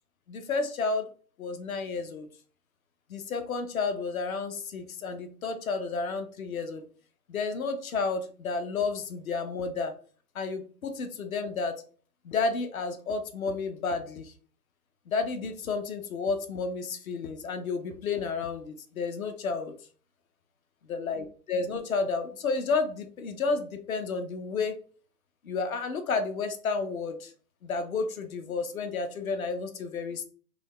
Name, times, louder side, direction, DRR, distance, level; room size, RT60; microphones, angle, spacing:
voice 1, 0.3-1.1 1.4-2.3 3.1-6.8 7.3-9.9 10.3-11.8 12.2-14.3 15.1-19.7 20.9-24.8 25.4-27.3 27.6-30.2, left 4 dB, 60° left, 8 dB, 0.7 m, -31 dB
4.0 x 2.3 x 3.1 m, 0.41 s
hypercardioid pair, 140°, 49 cm